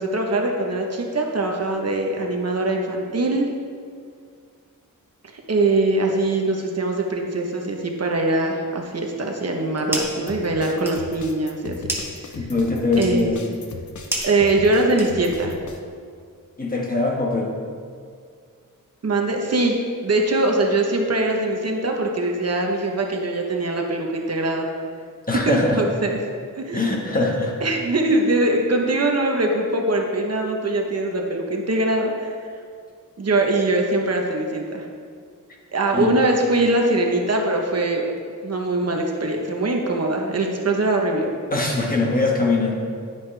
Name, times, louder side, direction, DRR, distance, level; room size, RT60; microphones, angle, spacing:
voice 1, 0.0-3.5 5.5-11.8 13.0-13.3 14.2-15.5 19.0-19.8 20.0-24.7 25.5-26.2 26.6-27.0 27.6-32.4 33.2-34.9 35.7-38.0 38.4-41.3, right 2 dB, 50° right, 1 dB, 1.0 m, -22 dB
sound 1, 9.4-10.3 10.6-15.5, right 1 dB, 5° right, 1.4 m, -33 dB
sound 2, 10.3-15.8, left 4 dB, 65° left, 0.9 m, -37 dB
voice 2, 12.4-13.4 16.6-17.5 25.3-25.8 26.7-27.5 35.9-36.1 41.5-42.8, left 3 dB, 25° left, -2 dB, 1.4 m, -22 dB
10.0 x 9.4 x 3.3 m, 2.2 s
wide cardioid pair, 140°, 33 cm